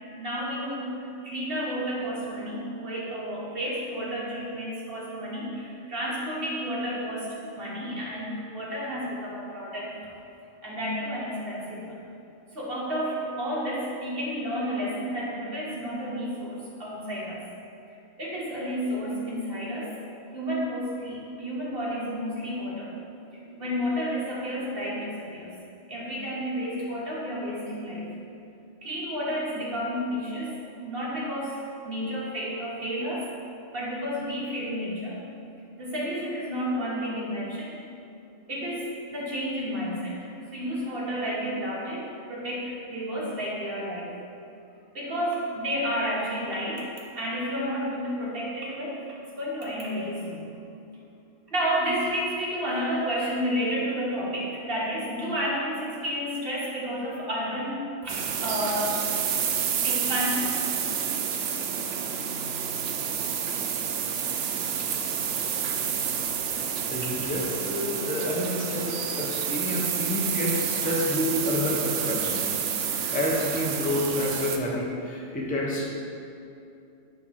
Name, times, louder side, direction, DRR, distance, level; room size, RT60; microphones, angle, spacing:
voice 1, 0.2-10.1 10.6-12.0 12.5-17.4 18.2-19.9 20.3-22.9 23.6-25.6 25.9-28.1 28.8-33.3 33.7-35.2 35.8-37.8 38.5-44.1 44.9-49.0 49.4-50.4 51.5-59.0 59.7-60.6 66.2-66.3, equal, 50° right, -6 dB, 1.5 m, -31 dB
sound 1, 58.1-74.6, right 7 dB, 75° right, 0.9 m, -29 dB
voice 2, 66.9-75.9, left 1 dB, 10° left, -3 dB, 0.6 m, -29 dB
6.5 x 3.6 x 5.8 m, 2.6 s
omnidirectional pair, 1.3 m